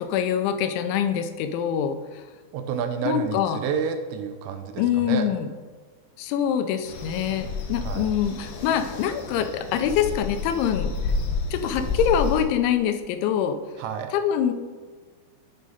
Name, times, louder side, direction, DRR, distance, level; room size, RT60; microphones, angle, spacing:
voice 1, 0.0-2.2 3.0-3.6 4.8-5.5 6.2-11.1 11.5-13.6 14.1-14.5, left 9 dB, 85° left, 8 dB, 3.0 m, -25 dB
voice 2, 2.5-5.3 7.8-8.1 13.8-14.1, right 7 dB, 85° right, 7 dB, 2.7 m, -29 dB
sound 1, 6.9-12.4, left 3 dB, 70° left, 2.5 m, -30 dB
10.5 x 6.3 x 2.8 m, 1.5 s
omnidirectional pair, 5.3 m